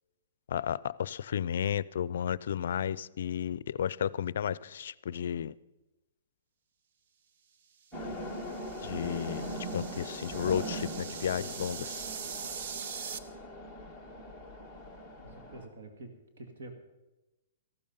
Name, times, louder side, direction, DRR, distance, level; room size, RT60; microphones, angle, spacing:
voice 1, 0.5-5.5 8.8-9.4 9.7-12.0, left 9 dB, 65° left, 0.4 m, -33 dB
sound 1, 7.9-15.7, equal, 5° right, 1.8 m, -40 dB
sound 2, 8.1-13.2, right 7 dB, 50° right, 0.8 m, -43 dB
voice 2, 15.2-16.1 16.4-16.7, right 2 dB, 75° right, 2.2 m, -46 dB
14.5 x 12.0 x 5.5 m
hypercardioid pair, 160°, 0 cm